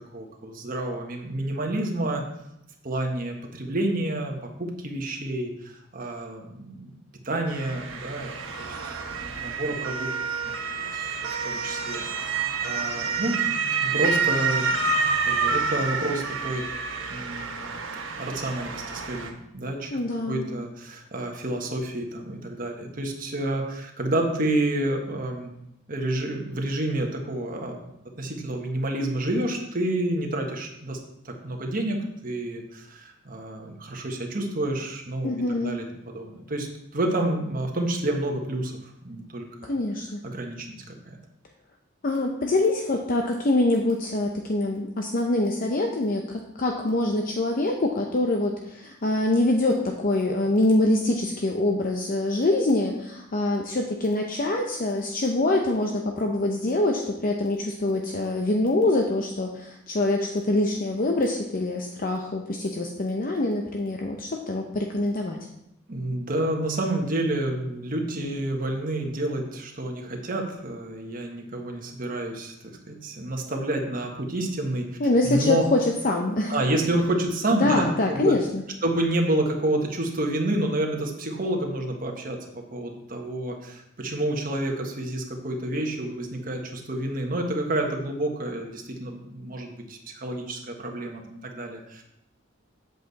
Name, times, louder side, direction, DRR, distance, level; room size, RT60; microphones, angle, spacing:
voice 1, 0.1-2.2 2.8-6.9 7.2-10.7 10.9-13.4 13.8-14.8 15.2-16.7 17.1-17.6 18.1-25.5 25.9-27.9 28.2-31.0 31.2-36.7 36.9-38.7 39.0-39.7 40.2-41.2 65.9-74.9 75.2-75.6 76.5-77.8 78.1-78.3 78.8-92.0, right 1 dB, 45° right, 2 dB, 1.4 m, -29 dB
Motor vehicle (road) / Siren, 7.5-19.3, right 5 dB, 70° right, 1.0 m, -28 dB
voice 2, 19.9-20.5 35.2-35.8 39.6-40.2 42.0-65.4 75.0-76.6 77.5-78.6, left 2 dB, 45° left, 2 dB, 0.7 m, -25 dB
8.0 x 7.8 x 4.1 m, 0.81 s
head